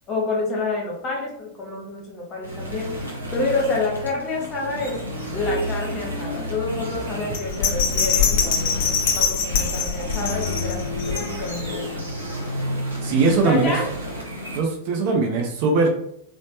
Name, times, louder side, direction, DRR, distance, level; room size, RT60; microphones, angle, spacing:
voice 1, 0.1-2.9 3.3-5.0 5.3-11.9 13.4-13.9, left 2 dB, 25° left, -2 dB, 1.0 m, -28 dB
sound 1, 2.4-14.6, equal, 80° right, 0.9 m, -31 dB
Bell, 7.3-11.7 12.1-12.2, left 6 dB, 50° left, 0.6 m, -23 dB
voice 2, 13.0-13.7 14.5-15.9, right 3 dB, 50° right, 2 dB, 0.5 m, -20 dB
3.1 x 2.1 x 2.9 m, 0.71 s
figure-of-eight pair, 90°, 0 cm